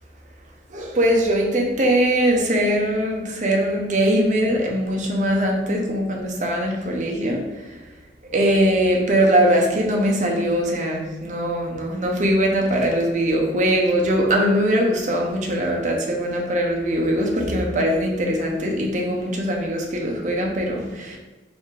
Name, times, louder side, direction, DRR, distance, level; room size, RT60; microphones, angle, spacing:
voice 1, 0.7-7.4 8.3-21.2, equal, 40° right, 0 dB, 0.6 m, -21 dB
3.2 x 2.4 x 4.4 m, 1.2 s
head